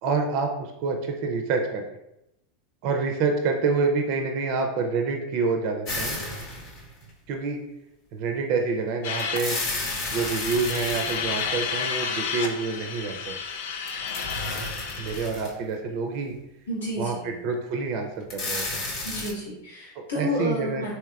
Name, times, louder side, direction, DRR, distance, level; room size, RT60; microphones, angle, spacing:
voice 1, 0.0-2.0 2.8-6.2 7.3-7.6 8.1-9.6 10.1-13.4 15.0-16.3 17.0-18.8 20.0-20.9, right 4 dB, 55° right, 3 dB, 0.4 m, -27 dB
sound 1, 5.8-7.1 9.2-11.8 13.9-15.7 16.3-16.4 18.2-19.3, left 2 dB, 50° left, 0.8 m, -32 dB
sound 2, 9.0-15.3, left 6 dB, 65° left, 0.4 m, -32 dB
voice 2, 16.7-17.3 19.0-20.9, left 1 dB, 85° left, -6 dB, 1.5 m, -30 dB
3.3 x 2.8 x 2.3 m, 0.86 s
hypercardioid pair, 95°, 0 cm